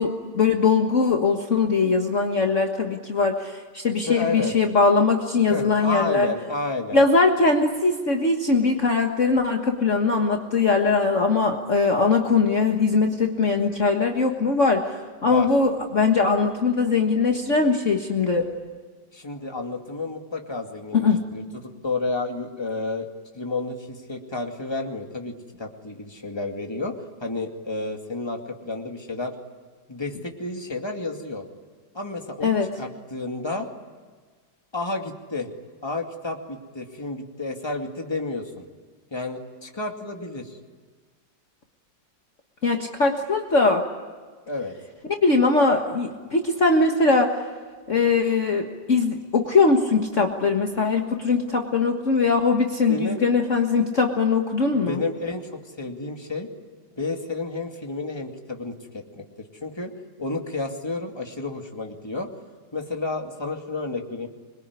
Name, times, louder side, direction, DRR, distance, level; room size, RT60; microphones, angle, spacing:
voice 1, 0.0-6.3 6.9-18.5 20.9-21.2 32.4-32.7 42.6-43.8 45.2-47.4 47.9-55.0, left 4 dB, 45° left, 2 dB, 1.8 m, -21 dB
voice 2, 4.1-4.5 5.5-7.0 15.2-15.5 19.1-21.4 21.8-23.1 23.3-29.3 29.9-31.4 31.9-33.7 34.7-35.5 35.8-38.6 39.1-40.6 44.5-44.7 52.9-53.2 54.7-56.5 57.0-59.9 60.2-62.3 62.7-64.3, left 3 dB, 15° left, 2 dB, 2.4 m, -31 dB
26.5 x 22.0 x 9.7 m, 1.5 s
omnidirectional pair, 2.0 m